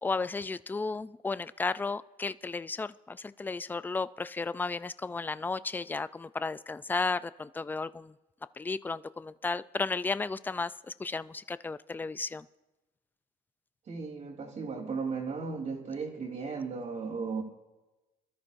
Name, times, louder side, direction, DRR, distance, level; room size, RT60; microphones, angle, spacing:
voice 1, 0.0-8.1 8.6-12.5, left 4 dB, 10° left, 16 dB, 0.3 m, -34 dB
voice 2, 13.9-17.4, right 5 dB, 45° right, 1 dB, 3.4 m, -35 dB
25.5 x 13.0 x 2.6 m, 1.1 s
cardioid pair, 110°, 17 cm